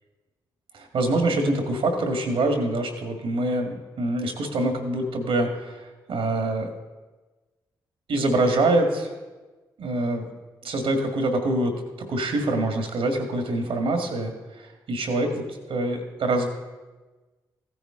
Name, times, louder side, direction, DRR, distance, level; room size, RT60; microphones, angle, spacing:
voice 1, 0.7-6.7 8.1-9.1 9.8-10.3 10.6-15.4 15.7-16.5, right 2 dB, 75° right, 4 dB, 1.9 m, -25 dB
15.0 x 10.0 x 3.8 m, 1.2 s
supercardioid pair, 45°, 9 cm